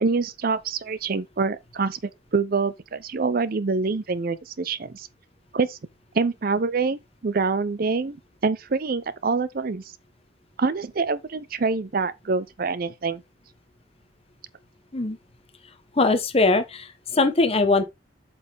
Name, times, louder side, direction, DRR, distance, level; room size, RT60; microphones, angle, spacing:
voice 1, 0.0-2.0 2.3-5.1 5.5-5.8 6.1-8.2 8.4-9.8 10.6-13.2, right 4 dB, 50° right, 0.5 m, -25 dB
voice 2, 16.0-17.8, left 3 dB, 30° left, 1.0 m, -21 dB
8.1 x 5.4 x 3.3 m
head